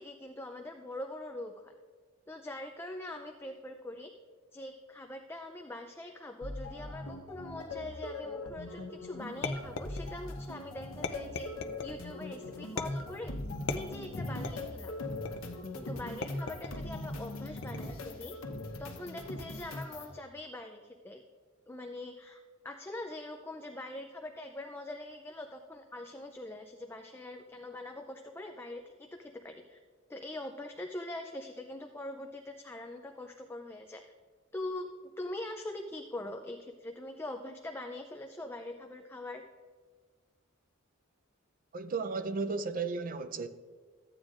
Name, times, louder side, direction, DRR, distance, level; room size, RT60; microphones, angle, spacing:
voice 1, 0.0-1.7 2.3-4.1 4.5-11.5 11.8-13.3 13.7-15.0 15.7-18.3 18.8-21.2 21.7-29.8 30.1-34.0 34.5-39.4, left 1 dB, 10° left, 0.4 m, -43 dB
sound 1, 6.4-20.1, left 2 dB, 90° left, 1.1 m, -40 dB
sound 2, 9.4-10.4 11.0-12.0 12.8-13.2 13.7-14.7 15.3-15.7 16.2-16.9 17.6-18.1, left 4 dB, 65° left, 0.6 m, -39 dB
voice 2, 41.7-43.5, right 4 dB, 45° right, 0.5 m, -34 dB
14.0 x 8.9 x 2.5 m
head